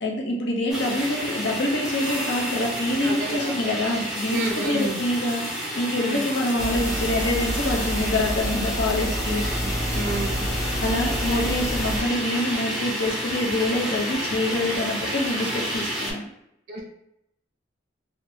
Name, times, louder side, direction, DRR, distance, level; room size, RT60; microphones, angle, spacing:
voice 1, 0.0-5.4 5.7-9.4 9.9-10.0 10.8-16.3, left 1 dB, 65° left, -1 dB, 0.6 m, -26 dB
sound 1, 0.7-16.1, equal, ahead, 0.8 m, -30 dB
voice 2, 3.0-3.5 4.3-5.0 6.0-6.2 9.2-10.5 16.7-16.8, right 1 dB, 50° right, 1 dB, 0.5 m, -30 dB
sound 2, 6.6-12.0, equal, 15° left, 0.3 m, -28 dB
3.0 x 2.1 x 2.6 m, 0.79 s
head